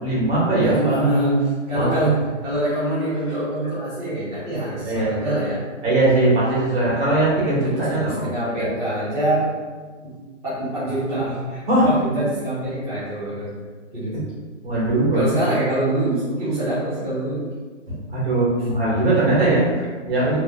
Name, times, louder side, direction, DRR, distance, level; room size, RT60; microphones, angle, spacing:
voice 1, 0.0-1.0 1.7-2.0 4.8-5.1 5.8-8.3 8.6-8.7 11.7-11.9 14.6-15.4 17.9-20.4, right 2 dB, 55° right, -8 dB, 1.5 m, -20 dB
voice 2, 0.6-5.6 6.8-7.1 7.6-9.5 10.4-13.5 13.9-14.3 15.1-17.5, right 1 dB, 10° right, -13 dB, 0.5 m, -25 dB
3.0 x 2.1 x 2.2 m, 1.4 s
hypercardioid pair, 140°, 37 cm